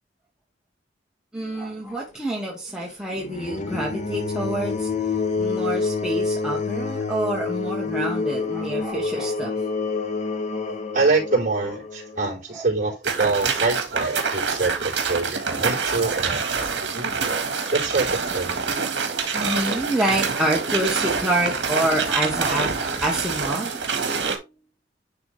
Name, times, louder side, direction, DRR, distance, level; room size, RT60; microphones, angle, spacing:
voice 1, 1.3-9.5 10.2-10.4 12.3-12.7 16.0-16.8 19.3-23.8, right 1 dB, 5° right, 1.4 m, -28 dB
sound 1, 3.2-12.2, left 4 dB, 40° left, 0.9 m, -27 dB
voice 2, 10.9-17.3 17.7-18.6, right 3 dB, 45° right, 4.0 m, -25 dB
sound 2, 13.0-24.4, right 5 dB, 80° right, 1.7 m, -26 dB
10.5 x 3.5 x 3.4 m
head